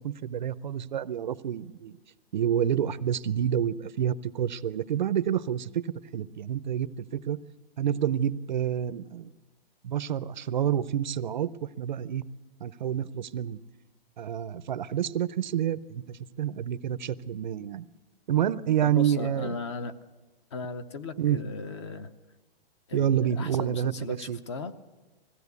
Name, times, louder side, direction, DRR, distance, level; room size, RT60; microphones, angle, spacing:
voice 1, 0.0-1.9 2.3-7.4 7.8-9.3 9.8-12.2 12.6-13.6 14.2-17.8 18.3-19.6 21.2-21.4 22.9-24.4, right 9 dB, 50° right, 16 dB, 0.6 m, -28 dB
voice 2, 18.8-19.9 20.5-22.1 22.9-24.7, left 3 dB, 30° left, 13 dB, 0.8 m, -37 dB
21.5 x 15.5 x 8.2 m, 1.3 s
hypercardioid pair, 175°, 30 cm